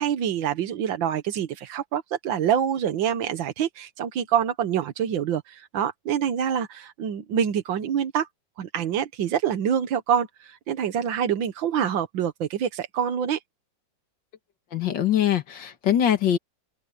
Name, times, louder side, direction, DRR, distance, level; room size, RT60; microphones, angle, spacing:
voice 1, 0.0-8.3 8.6-13.4, right 8 dB, 85° right, 1.8 m, -26 dB
voice 2, 14.7-16.4, left 10 dB, 75° left, 2.2 m, -22 dB
omnidirectional pair, 2.0 m